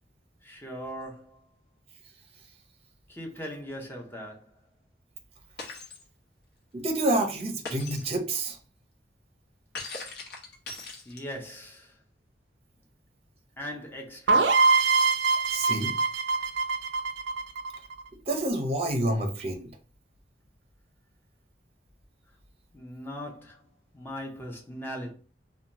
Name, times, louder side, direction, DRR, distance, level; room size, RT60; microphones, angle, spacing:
voice 1, 0.4-1.4 3.1-4.5 11.0-11.9 13.6-14.6 22.7-23.6 23.9-25.1, equal, 15° left, 0.6 m, -39 dB
Shatter, 5.6-6.0 7.6-8.1 9.7-11.5, left 3 dB, 65° left, 0.8 m, -40 dB
voice 2, 6.7-8.6 15.5-15.9 18.3-19.7, right 1 dB, 35° right, 0.6 m, -28 dB
sound 1, 14.3-18.0, right 4 dB, 85° right, 0.4 m, -23 dB
2.7 x 2.2 x 2.8 m
head